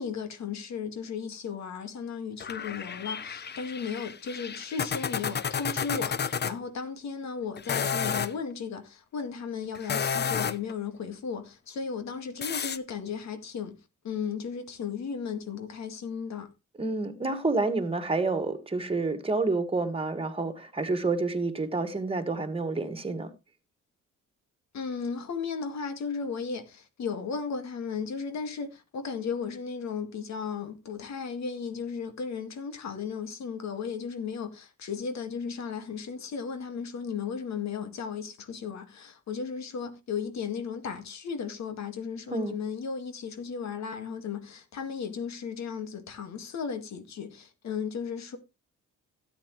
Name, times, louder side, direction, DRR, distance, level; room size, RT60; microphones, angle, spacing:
voice 1, 0.0-13.7 14.0-16.5 24.7-48.4, left 6 dB, 65° left, 2.0 m, -35 dB
sound 1, 2.4-6.5 7.6-8.3 9.7-10.7 12.4-12.8, left 7 dB, 35° left, 0.7 m, -31 dB
voice 2, 16.8-23.3 42.3-42.6, right 3 dB, 20° right, 1.9 m, -29 dB
13.0 x 9.0 x 3.2 m
cardioid pair, 90°, 30 cm